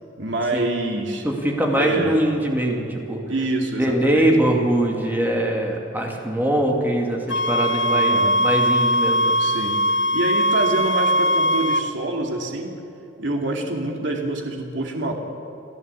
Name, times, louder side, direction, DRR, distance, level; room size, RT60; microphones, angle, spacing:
voice 1, 0.2-1.2 1.7-2.2 3.3-4.3 7.9-8.4 9.4-9.8 10.1-12.7 13.2-15.1, right 2 dB, 70° right, 1 dB, 2.4 m, -26 dB
voice 2, 1.2-3.2 3.7-9.4, right 1 dB, 10° right, 0 dB, 2.5 m, -22 dB
sound 1, 7.3-11.9, equal, 70° left, 0.7 m, -20 dB
29.0 x 11.0 x 8.3 m, 2.8 s
head